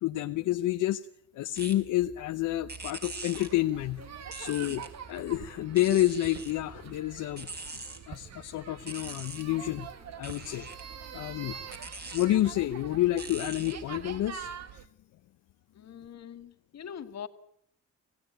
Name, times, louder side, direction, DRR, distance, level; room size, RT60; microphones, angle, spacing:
voice 1, 0.0-1.1 1.3-4.0 4.4-7.5 8.1-9.9 10.2-10.7 11.1-11.6 12.1-14.8, left 14 dB, 80° left, 7 dB, 0.9 m, -29 dB
sound 1, 1.5-14.4, right 3 dB, 35° right, 4.4 m, -45 dB
sound 2, 3.3-14.9, right 7 dB, 60° right, 1.8 m, -45 dB
voice 2, 15.7-17.3, left 8 dB, 60° left, 10 dB, 1.9 m, -43 dB
26.5 x 16.0 x 9.3 m, 0.71 s
cardioid pair, 90°, 30 cm